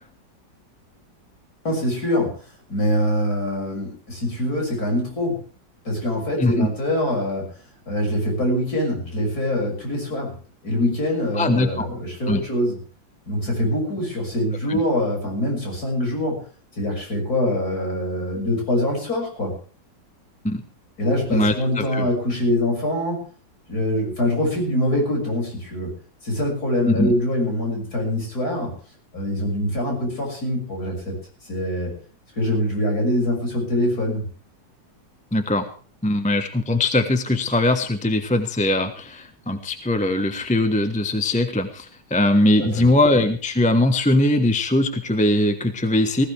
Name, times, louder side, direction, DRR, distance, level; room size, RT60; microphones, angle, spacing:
voice 1, 1.7-2.4 2.7-5.4 5.9-7.5 7.9-10.4 10.6-12.8 13.3-16.4 16.8-19.5 21.0-23.2 23.7-25.9 26.2-28.7 29.1-31.2 31.5-31.9 32.4-34.2 42.6-42.9, left 1 dB, 50° left, 0 dB, 7.0 m, -24 dB
voice 2, 11.3-11.9 12.3-12.4 14.7-14.8 20.4-20.6 21.3-22.1 26.9-27.1 35.3-35.6 36.0-46.2, left 1 dB, 5° left, 7 dB, 0.9 m, -21 dB
19.5 x 16.0 x 3.4 m, 0.40 s
omnidirectional pair, 2.0 m